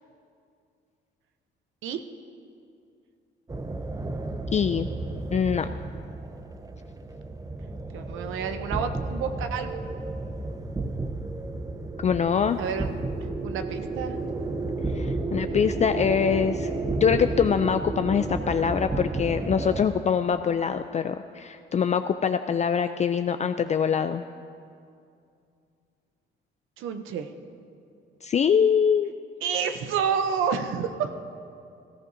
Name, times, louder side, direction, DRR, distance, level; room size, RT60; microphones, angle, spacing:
sound 1, 3.5-19.9, right 2 dB, 15° right, 0.7 m, -32 dB
voice 1, 4.5-4.9 5.3-5.7 12.0-12.6 14.9-16.7 17.0-24.2 28.2-29.1, left 7 dB, 35° left, 9 dB, 0.4 m, -24 dB
voice 2, 7.9-9.8 12.6-12.9 13.4-14.2 26.8-27.3 29.4-31.1, right 7 dB, 85° right, 7 dB, 0.7 m, -29 dB
18.5 x 14.0 x 2.7 m, 2.4 s
cardioid pair, 90°, 20 cm